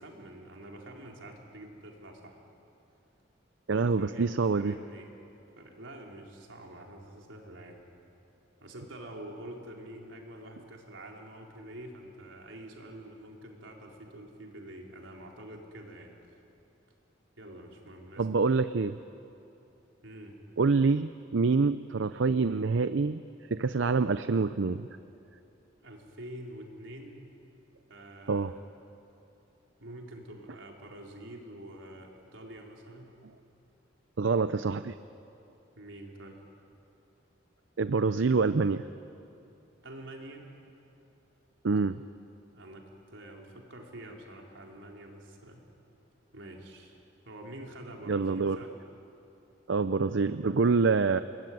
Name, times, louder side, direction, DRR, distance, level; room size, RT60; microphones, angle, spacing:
voice 1, 0.0-2.4 3.7-5.1 5.6-7.8 8.6-16.1 17.4-18.3 20.0-20.4 25.8-27.4 27.9-28.7 29.8-33.1 35.8-36.4 39.8-40.4 42.5-42.8 43.1-45.7 46.3-47.0 47.2-48.7, right 1 dB, 90° right, 0 dB, 4.2 m, -46 dB
voice 2, 3.7-4.7 18.2-19.0 20.6-23.2 23.5-24.9 28.3-28.5 34.2-35.0 37.8-38.8 41.6-42.0 48.1-48.6 49.7-51.2, right 4 dB, 70° right, 12 dB, 0.6 m, -26 dB
29.0 x 21.0 x 9.5 m, 2.8 s
head